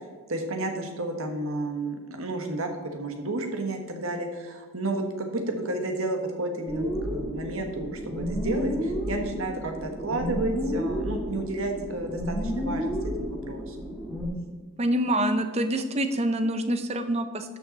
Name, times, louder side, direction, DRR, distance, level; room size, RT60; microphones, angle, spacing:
voice 1, 0.3-12.9 13.2-13.8, right 2 dB, 70° right, 4 dB, 1.5 m, -31 dB
sound 1, 6.7-14.3, equal, ahead, 2.2 m, -31 dB
voice 2, 14.8-17.6, right 1 dB, 30° right, 8 dB, 0.7 m, -26 dB
12.5 x 5.8 x 4.0 m, 1.4 s
head